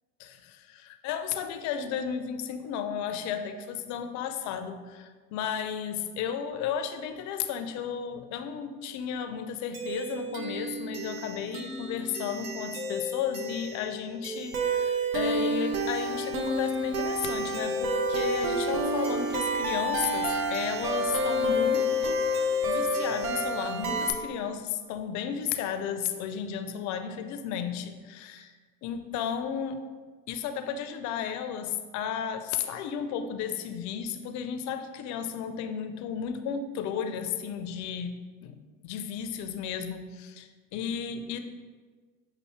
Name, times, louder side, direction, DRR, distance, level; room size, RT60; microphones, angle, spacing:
voice 1, 0.2-28.5 28.8-29.8 30.3-38.6 38.8-41.4, left 8 dB, 45° left, 9 dB, 0.5 m, -34 dB
sound 1, 9.7-24.1, equal, 80° right, 0.7 m, -29 dB
6.5 x 2.6 x 3.1 m, 1.4 s
hypercardioid pair, 85°, 42 cm